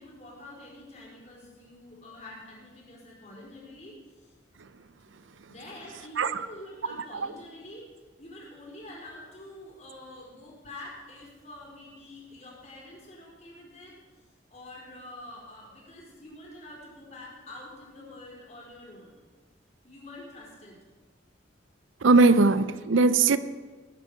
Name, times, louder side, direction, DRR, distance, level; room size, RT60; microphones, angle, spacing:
voice 1, 0.0-4.3 5.5-7.9 8.2-13.9 14.5-19.1 19.8-20.8, left 1 dB, 35° left, 4.2 m, -46 dB
voice 2, 22.0-23.4, right 3 dB, 80° right, 0.6 m, -20 dB
18.5 x 9.7 x 5.1 m
head